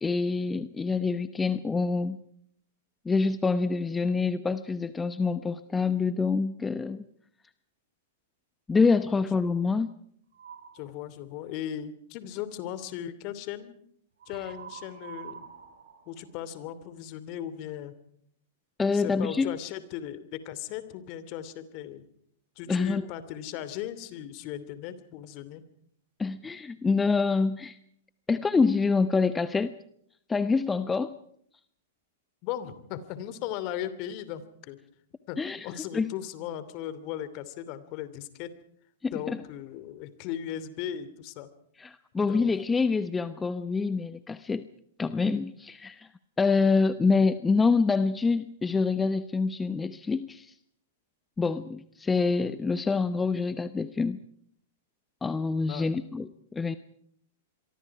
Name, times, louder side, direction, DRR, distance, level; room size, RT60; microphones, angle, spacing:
voice 1, 0.0-2.2 3.0-7.0 8.7-9.9 18.8-19.6 22.7-23.1 26.2-27.8 28.3-29.7 30.3-31.1 35.4-35.7 35.9-36.1 39.0-39.4 41.8-44.6 45.0-46.1 46.4-50.5 51.4-54.2 55.2-56.8, left 4 dB, 15° left, 13 dB, 0.9 m, -26 dB
sound 1, 10.3-10.9 14.2-17.0, right 7 dB, 70° right, 6.0 m, -46 dB
voice 2, 10.7-13.7 14.3-15.5 16.1-17.9 18.9-22.0 22.6-25.6 32.4-34.8 35.3-38.5 39.1-41.5 42.3-42.6 55.7-55.9, left 11 dB, 45° left, 14 dB, 2.7 m, -37 dB
27.0 x 23.5 x 4.8 m, 0.66 s
figure-of-eight pair, 105°, 0 cm